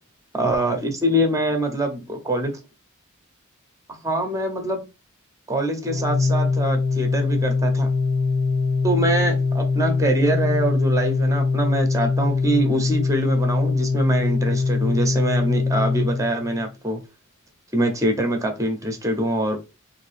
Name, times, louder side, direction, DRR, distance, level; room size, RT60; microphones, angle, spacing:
voice 1, 0.3-2.5 3.9-4.8 5.5-7.9 8.8-17.0 17.7-19.6, right 1 dB, 15° right, 0.8 m, -24 dB
Organ, 5.8-16.7, left 4 dB, 85° left, 0.7 m, -22 dB
3.5 x 2.7 x 3.3 m
head